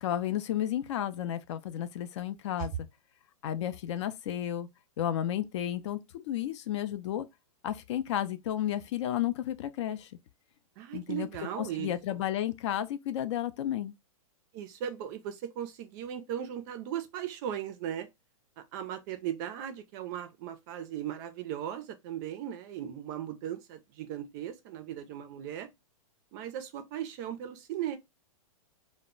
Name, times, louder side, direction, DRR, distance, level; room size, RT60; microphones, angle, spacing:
voice 1, 0.0-2.9 3.4-4.7 5.0-7.3 7.6-10.1 10.9-11.3 11.6-13.9, left 11 dB, 55° left, 0.4 m, -32 dB
voice 2, 10.8-12.2 14.5-18.1 18.6-25.7 26.3-28.0, right 10 dB, 35° right, 0.4 m, -37 dB
2.1 x 2.0 x 3.7 m
hypercardioid pair, 145°, 18 cm